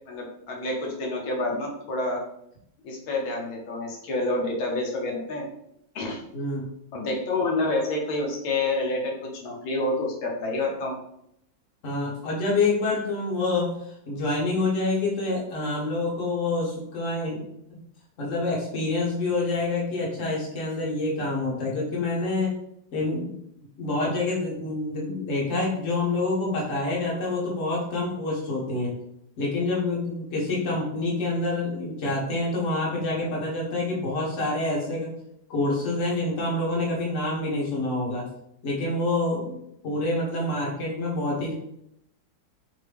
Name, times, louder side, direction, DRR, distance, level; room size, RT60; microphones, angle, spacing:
voice 1, 0.1-2.2 2.8-5.5 5.9-6.2 6.9-9.1 9.4-10.9, left 2 dB, 85° left, 0 dB, 1.7 m, -28 dB
voice 2, 6.3-6.7 11.8-17.8 18.2-22.5 22.9-23.3 23.8-29.0 29.4-35.1 35.5-38.2 38.6-41.5, left 2 dB, 45° left, -3 dB, 1.3 m, -27 dB
3.9 x 3.3 x 3.4 m, 0.75 s
omnidirectional pair, 2.1 m